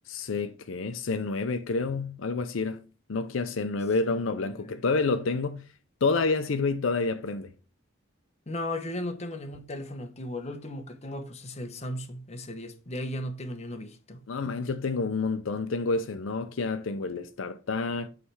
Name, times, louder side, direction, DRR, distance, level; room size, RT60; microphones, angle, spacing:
voice 1, 0.1-2.8 3.1-5.6 6.0-7.5 14.3-18.1, left 3 dB, 75° left, 0.5 m, -29 dB
voice 2, 8.5-14.2, left 1 dB, 35° left, 0.9 m, -36 dB
8.5 x 3.3 x 4.7 m
head